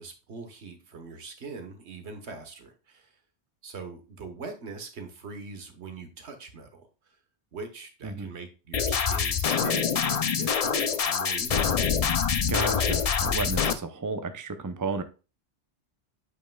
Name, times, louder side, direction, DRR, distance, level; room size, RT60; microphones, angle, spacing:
voice 1, 0.0-3.1 3.6-6.9 7.5-11.7, right 4 dB, 65° right, 7 dB, 1.4 m, -41 dB
sound 1, 8.7-13.7, left 6 dB, 50° left, 0.4 m, -25 dB
voice 2, 12.5-15.0, right 4 dB, 25° right, 9 dB, 0.4 m, -32 dB
8.4 x 5.5 x 2.3 m, 0.32 s
omnidirectional pair, 1.2 m